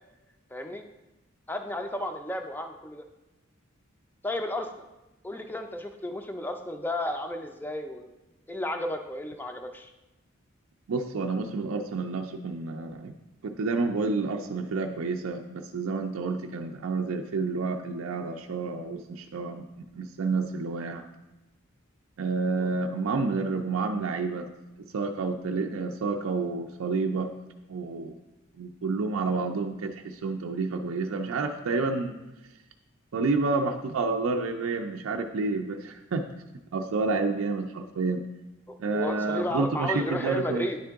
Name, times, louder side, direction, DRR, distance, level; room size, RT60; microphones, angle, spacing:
voice 1, 0.5-0.8 1.5-3.0 4.2-4.7 5.2-8.1 8.5-9.9 22.6-22.7 38.7-40.8, left 1 dB, 10° left, 5 dB, 0.4 m, -33 dB
voice 2, 10.9-13.1 13.4-19.6 20.0-21.0 22.2-24.5 24.9-27.3 27.7-28.2 28.6-32.1 33.1-36.2 36.7-38.2 38.8-40.7, right 3 dB, 80° right, 3 dB, 0.4 m, -29 dB
9.7 x 3.7 x 3.5 m, 1.0 s
head